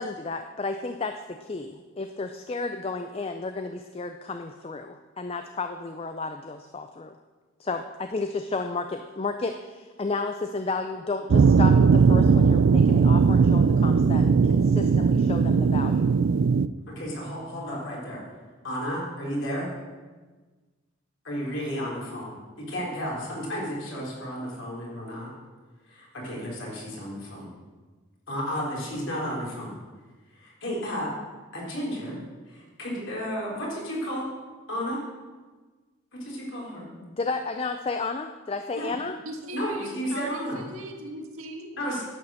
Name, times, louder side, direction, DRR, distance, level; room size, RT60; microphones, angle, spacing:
voice 1, 0.0-7.2 7.6-16.1 37.0-39.2, left 3 dB, 25° left, 7 dB, 0.4 m, -32 dB
sound 1, 11.3-16.7, right 5 dB, 60° right, 0.3 m, -19 dB
voice 2, 16.9-18.2 18.6-19.7 21.2-25.3 25.9-27.5 28.3-29.7 30.4-31.1 31.5-32.2 32.5-34.3 34.7-35.0 36.1-36.9 38.7-38.9 39.5-40.6 41.7-42.0, equal, 60° left, -4 dB, 3.8 m, -32 dB
voice 3, 39.2-41.7, right 1 dB, 80° right, 2 dB, 1.8 m, -39 dB
10.5 x 8.5 x 6.3 m, 1.3 s
head